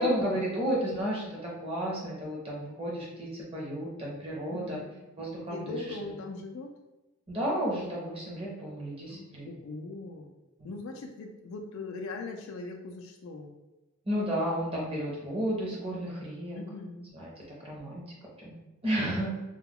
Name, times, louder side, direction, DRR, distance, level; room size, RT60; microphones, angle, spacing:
voice 1, 0.0-4.8 5.2-5.8 7.3-9.5 10.6-10.7 14.1-16.6 17.1-18.0 18.4-18.6 18.8-19.3, equal, 25° right, -4 dB, 0.6 m, -32 dB
voice 2, 4.5-5.0 5.5-6.7 9.1-10.3 10.6-13.5 16.5-17.1, left 3 dB, 65° left, 2 dB, 0.3 m, -40 dB
2.3 x 2.1 x 3.5 m, 1.1 s
head